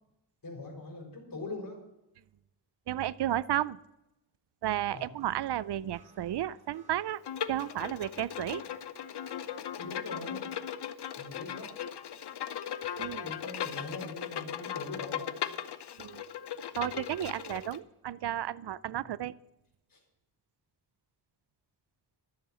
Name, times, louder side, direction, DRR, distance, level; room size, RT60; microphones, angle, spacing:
voice 1, 0.4-1.8 4.9-5.1 9.8-10.5 11.2-11.7 13.2-15.4 18.9-19.1 19.9-20.0, left 2 dB, 55° left, 0 dB, 4.5 m, -42 dB
voice 2, 2.9-3.8 4.6-7.2 7.5-8.6 13.0-13.3 16.0-16.2 16.7-19.3, right 12 dB, 75° right, 20 dB, 0.5 m, -33 dB
sound 1, 5.1-14.4, right 3 dB, 15° right, 4.6 m, -63 dB
Bowed string instrument, 7.2-17.8, left 9 dB, 75° left, 0.8 m, -38 dB
12.5 x 7.3 x 7.5 m, 0.91 s
wide cardioid pair, 85°, 41 cm